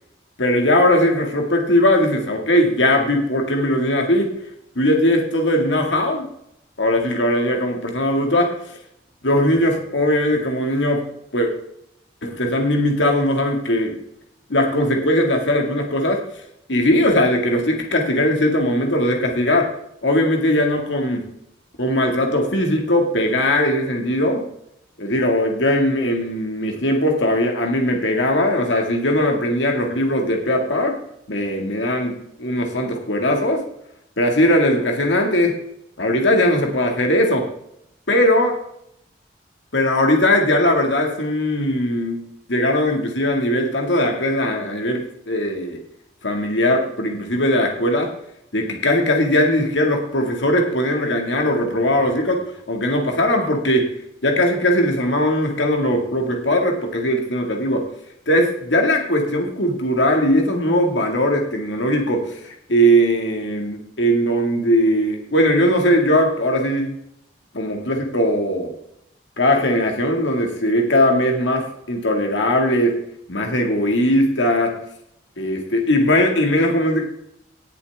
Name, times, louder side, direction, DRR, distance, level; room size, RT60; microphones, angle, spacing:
voice 1, 0.4-4.3 4.8-6.3 6.8-8.6 9.2-11.1 11.3-11.5 12.2-13.9 14.5-16.2 16.7-19.7 20.0-21.3 21.8-24.5 25.0-31.0 31.3-33.7 34.2-35.6 36.0-37.5 38.1-38.6 39.7-42.2 42.5-45.8 46.2-48.1 48.5-52.4 52.7-54.0 54.2-57.9 58.3-66.9 67.5-68.7 69.4-73.0 73.3-74.8 75.4-77.1, left 1 dB, 80° left, 3 dB, 2.0 m, -19 dB
18.5 x 7.1 x 3.5 m, 0.74 s
head